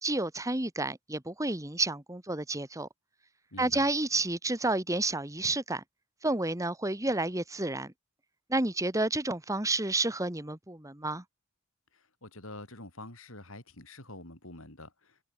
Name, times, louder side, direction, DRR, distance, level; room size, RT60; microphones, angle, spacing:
voice 1, 0.0-2.9 3.6-5.8 6.2-7.9 8.5-11.2, right 2 dB, 15° right, 1.7 m, -30 dB
voice 2, 3.5-3.9 11.9-15.2, left 2 dB, 60° left, 7.7 m, -46 dB
head